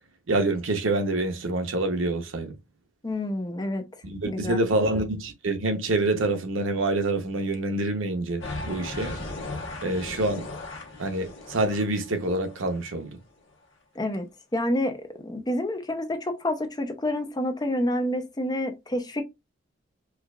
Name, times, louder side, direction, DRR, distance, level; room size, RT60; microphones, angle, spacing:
voice 1, 0.3-2.6 4.0-9.1 9.8-10.5 11.0-13.2, right 2 dB, 80° right, 0.8 m, -26 dB
voice 2, 3.0-3.8 4.3-4.8 14.0-15.0 15.2-19.2, left 1 dB, 20° left, 0.5 m, -28 dB
sound 1, 8.4-12.8, left 2 dB, 80° left, 1.2 m, -37 dB
4.6 x 2.3 x 2.2 m
head